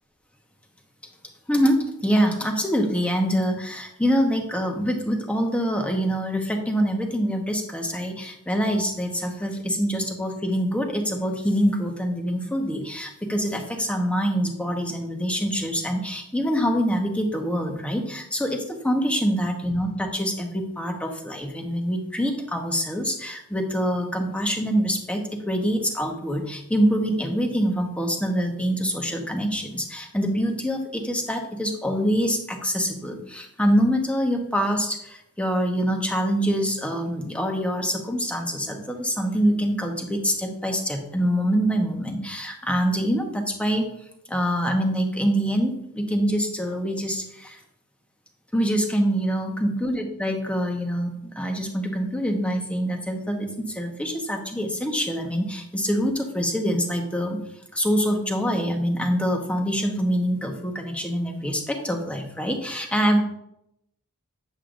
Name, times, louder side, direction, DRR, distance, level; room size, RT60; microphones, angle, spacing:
voice 1, 1.5-43.9 44.3-47.6 48.5-57.4 57.7-63.2, equal, 5° left, 3 dB, 0.9 m, -25 dB
8.5 x 7.5 x 2.5 m, 0.78 s
head